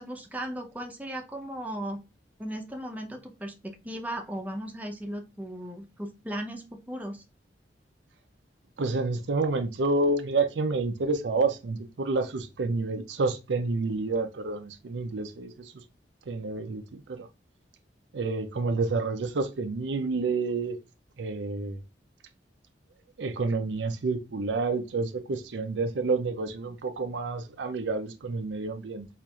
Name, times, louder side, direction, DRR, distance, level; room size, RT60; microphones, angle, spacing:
voice 1, 0.0-2.0 2.4-7.2, right 1 dB, 10° right, 0.6 m, -36 dB
voice 2, 8.8-15.8 16.3-17.3 18.1-20.8 21.2-21.8 23.2-29.1, right 3 dB, 85° right, 0.5 m, -29 dB
4.3 x 2.5 x 2.3 m
head